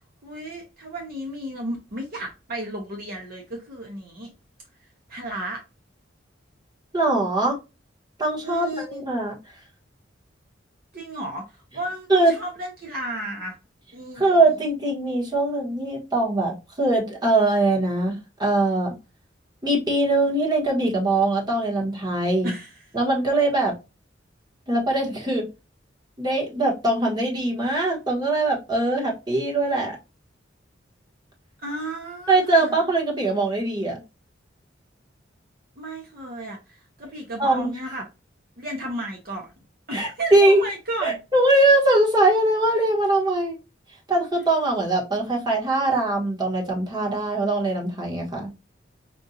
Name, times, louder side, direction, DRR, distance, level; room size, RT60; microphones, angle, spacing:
voice 1, 0.2-4.3 5.1-5.6 8.4-9.0 10.9-11.5 11.7-13.6 13.9-14.3 22.4-22.7 31.6-32.8 35.8-38.1 38.6-39.5 39.9-41.2, right 1 dB, 50° right, 0.8 m, -33 dB
voice 2, 6.9-7.6 8.2-9.4 12.1-12.3 14.2-18.9 19.6-22.5 22.9-23.7 24.7-25.5 26.2-30.0 32.3-34.0 37.4-37.7 39.9-40.6 41.0-43.6 44.1-48.5, right 2 dB, 25° right, 1.3 m, -22 dB
5.3 x 2.4 x 2.7 m
head